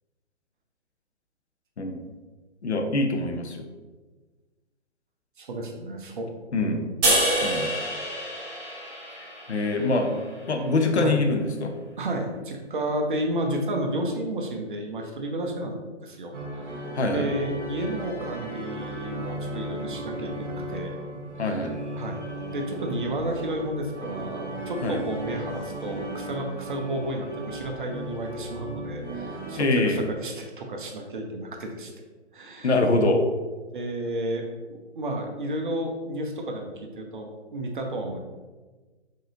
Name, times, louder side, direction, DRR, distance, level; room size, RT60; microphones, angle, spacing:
voice 1, 2.6-3.7 6.5-6.8 7.4-7.7 9.1-10.2 10.5-11.7 17.0-17.3 21.4-21.8 24.8-25.0 29.5-30.0 32.6-33.2, left 2 dB, 70° left, 4 dB, 0.7 m, -24 dB
voice 2, 5.4-6.3 6.6-7.0 11.0-11.2 12.0-16.9 17.1-21.6 21.9-32.0 32.3-32.7 33.7-34.4 34.7-38.2, right 1 dB, 45° right, 2 dB, 0.7 m, -32 dB
sound 1, 7.0-10.3, right 1 dB, 20° right, 1.0 m, -27 dB
sound 2, 16.3-29.6, right 1 dB, 80° right, 1.1 m, -36 dB
4.0 x 3.7 x 2.6 m, 1.3 s
figure-of-eight pair, 135°, 35 cm